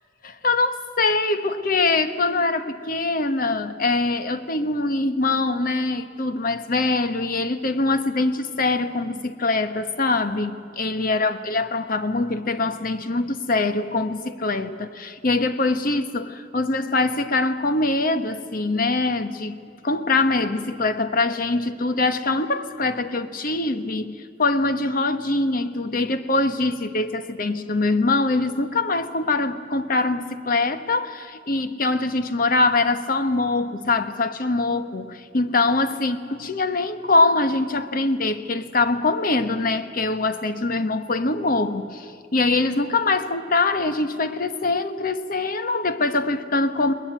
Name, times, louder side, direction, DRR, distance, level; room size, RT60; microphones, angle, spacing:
voice 1, 0.2-46.9, left 3 dB, 50° left, 1.1 m, -23 dB
22.0 x 20.5 x 9.2 m
head